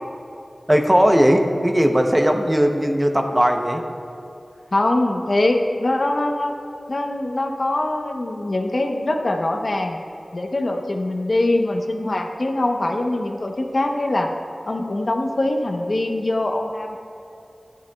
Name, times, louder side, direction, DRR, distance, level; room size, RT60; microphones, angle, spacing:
voice 1, 0.7-3.8, equal, 15° right, 4 dB, 0.7 m, -18 dB
voice 2, 4.7-6.5 6.9-10.0 10.3-14.3 14.7-17.0, left 1 dB, 55° left, 3 dB, 0.8 m, -23 dB
12.5 x 10.5 x 2.3 m, 2.7 s
wide cardioid pair, 75°, 0 cm